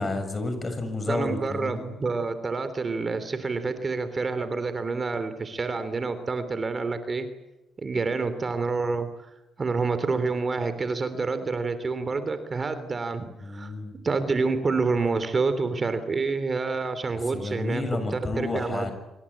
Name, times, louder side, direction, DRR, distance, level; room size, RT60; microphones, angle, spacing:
voice 1, 0.0-1.8 13.4-13.9 17.3-18.9, left 2 dB, 30° left, 9 dB, 7.0 m, -30 dB
voice 2, 1.1-7.3 7.8-9.1 9.6-13.7 14.0-17.8 18.1-18.9, right 4 dB, 35° right, 11 dB, 3.2 m, -28 dB
26.5 x 24.5 x 8.7 m, 0.96 s
cardioid pair, 90°, 0 cm